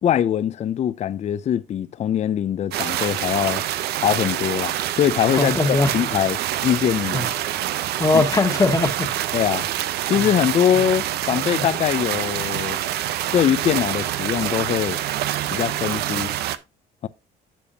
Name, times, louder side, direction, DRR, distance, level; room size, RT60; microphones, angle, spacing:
voice 1, 0.0-3.6 4.0-7.3 8.1-8.2 9.3-9.7 10.1-12.8 13.3-15.0 15.5-16.3 17.0-17.1, left 10 dB, 40° left, 0.5 m, -22 dB
sound 1, 2.7-16.6, right 12 dB, 75° right, 0.7 m, -26 dB
voice 2, 5.4-5.9 7.1-7.3 8.0-9.1 10.1-10.3 11.5-11.6, left 3 dB, 20° left, 1.5 m, -20 dB
10.0 x 6.9 x 2.7 m
cardioid pair, 110°, 17 cm